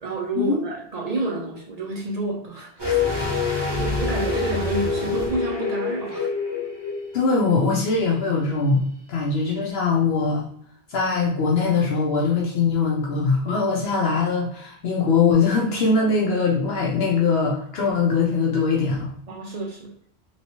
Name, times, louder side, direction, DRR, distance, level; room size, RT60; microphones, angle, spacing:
voice 1, 0.0-3.0 3.8-6.3 19.3-20.1, right 3 dB, 45° right, -1 dB, 0.6 m, -29 dB
sound 1, 2.8-7.6 7.9-8.0, left 5 dB, 25° right, 0.9 m, -26 dB
voice 2, 7.1-10.5 10.9-19.1, left 4 dB, 70° left, -3 dB, 0.8 m, -22 dB
3.1 x 2.9 x 2.8 m, 0.64 s
omnidirectional pair, 1.1 m